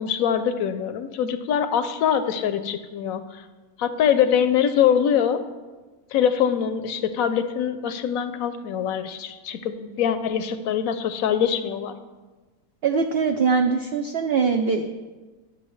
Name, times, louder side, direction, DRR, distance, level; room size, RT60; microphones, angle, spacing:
voice 1, 0.0-3.4 3.8-5.4 6.1-11.9, left 8 dB, 70° left, 11 dB, 0.9 m, -23 dB
voice 2, 12.8-14.9, right 5 dB, 85° right, 6 dB, 0.5 m, -22 dB
12.0 x 7.2 x 3.1 m, 1.3 s
omnidirectional pair, 1.6 m